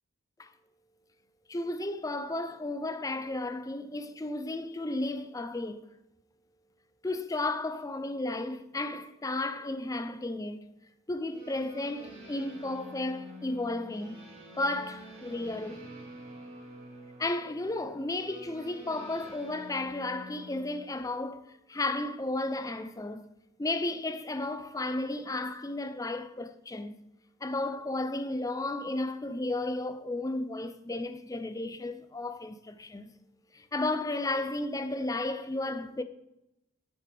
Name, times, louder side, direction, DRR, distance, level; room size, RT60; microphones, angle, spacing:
voice 1, 1.5-5.9 7.0-10.6 11.1-14.2 14.6-15.9 17.2-23.3 23.6-27.0 27.4-33.1 33.5-36.0, left 2 dB, 15° left, 0.5 m, -33 dB
sound 1, 11.3-20.8, equal, 35° right, 3.7 m, -48 dB
12.5 x 7.9 x 3.4 m
head